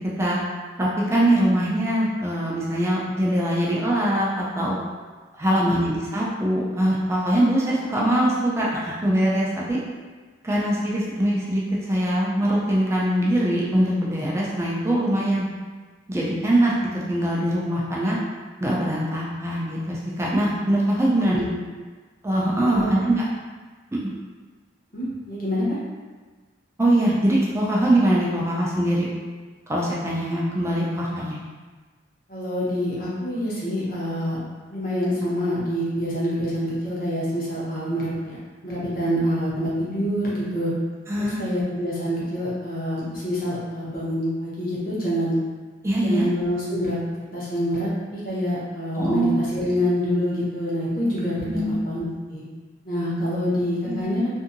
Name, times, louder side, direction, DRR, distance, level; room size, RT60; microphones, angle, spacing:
voice 1, 0.8-4.8 5.4-9.8 10.4-15.5 16.1-18.2 18.6-21.5 22.2-23.2 24.0-24.1 26.8-29.1 29.7-31.4 41.1-41.4 45.8-46.3 49.0-49.4 51.5-51.8 53.9-54.1, right 1 dB, 15° right, -5 dB, 0.4 m, -22 dB
voice 2, 21.2-21.5 22.6-22.9 24.9-25.8 32.3-34.4 34.7-40.7 41.2-45.4 46.0-47.0 47.3-52.4 52.8-54.3, equal, 45° left, -7 dB, 0.9 m, -26 dB
2.7 x 2.7 x 2.5 m, 1.4 s
head